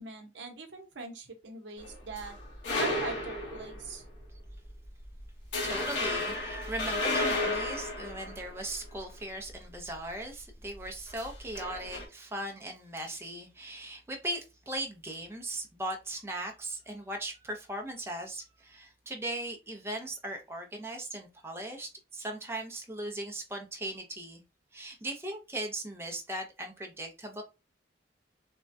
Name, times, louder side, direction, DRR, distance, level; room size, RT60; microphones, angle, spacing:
voice 1, 0.0-2.4 2.8-4.1, right 3 dB, 75° right, 0.7 m, -41 dB
sound 1, 1.8-4.0 4.5-4.7 5.0-5.2 5.5-9.0 11.1-12.0, left 2 dB, 75° left, 0.9 m, -33 dB
voice 2, 5.6-24.4 24.7-27.4, right 1 dB, 15° right, 0.4 m, -38 dB
3.3 x 2.1 x 2.6 m
head